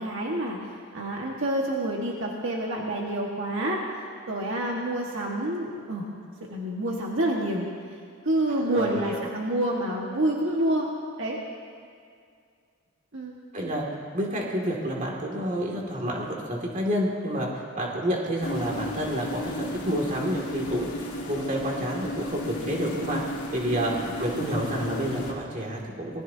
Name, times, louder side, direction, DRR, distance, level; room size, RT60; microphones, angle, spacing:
voice 1, 0.0-3.8 4.3-6.1 6.5-7.7 8.2-10.9 11.2-11.4 13.1-13.3 23.7-24.2, right 1 dB, 60° right, -2 dB, 1.6 m, -28 dB
voice 2, 8.6-9.2 13.5-13.9 14.1-23.2 23.5-26.2, equal, 35° right, -2 dB, 2.4 m, -29 dB
sound 1, 18.4-25.3, left 1 dB, 70° left, 3.1 m, -34 dB
26.0 x 19.5 x 2.8 m, 2.2 s
head